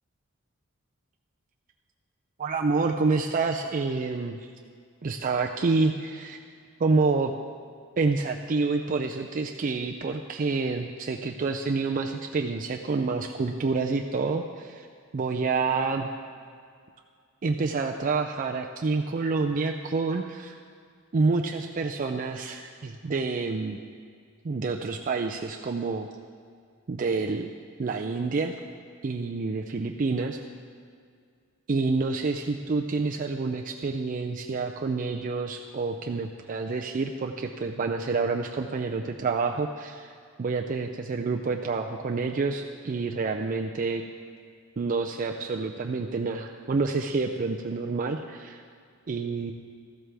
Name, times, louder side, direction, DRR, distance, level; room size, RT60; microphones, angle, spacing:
voice 1, 2.4-4.4 5.0-6.4 6.8-7.3 8.0-14.9 15.1-16.1 17.4-20.6 21.1-23.8 24.4-26.1 26.9-27.5 27.8-28.5 29.0-30.4 31.7-40.1 40.4-44.0 44.8-48.6 49.1-49.5, right 4 dB, 40° right, 2 dB, 0.4 m, -28 dB
13.5 x 12.5 x 3.4 m, 2.1 s
head